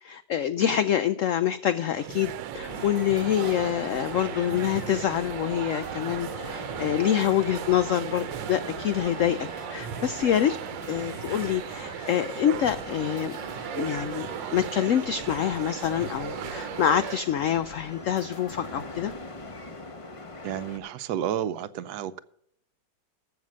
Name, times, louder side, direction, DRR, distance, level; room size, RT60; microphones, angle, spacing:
voice 1, 0.0-10.6 10.9-13.4 13.7-19.1, left 10 dB, 85° left, 0.7 m, -26 dB
sound 1, 1.9-17.2, right 12 dB, 85° right, 1.4 m, -37 dB
sound 2, 2.5-19.1, left 2 dB, 70° left, 2.9 m, -49 dB
sound 3, 2.6-20.8, left 2 dB, 25° left, 0.7 m, -42 dB
voice 2, 20.4-22.2, right 10 dB, 70° right, 1.2 m, -31 dB
14.5 x 6.0 x 6.3 m
omnidirectional pair, 1.9 m